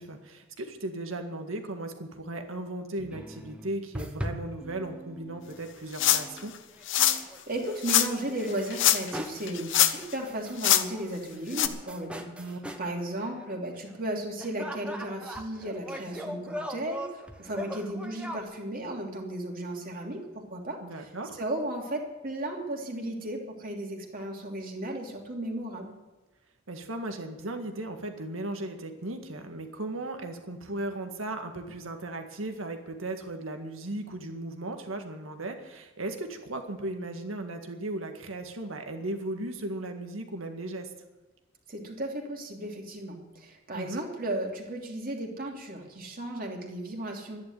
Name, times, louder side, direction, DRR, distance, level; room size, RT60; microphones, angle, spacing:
voice 1, 0.0-6.5 12.4-12.6 20.8-21.4 26.7-40.9 43.7-44.0, right 2 dB, 85° right, 5 dB, 1.9 m, -36 dB
sound 1, 3.0-5.7 6.0-7.4 7.7-8.9 9.1-9.5 9.9-10.6 10.9-12.9 13.2-14.0 14.4-18.4, equal, 5° right, 1.2 m, -40 dB
sound 2, 5.9-6.4 6.9-7.2 7.8-8.1 8.7-9.2 9.5-10.1 10.6-10.8 11.5-11.7, left 11 dB, 65° left, 0.9 m, -23 dB
voice 2, 7.1-12.3 12.8-25.9 41.7-47.4, right 1 dB, 45° right, 0 dB, 2.9 m, -35 dB
12.5 x 10.5 x 9.5 m, 1.1 s
head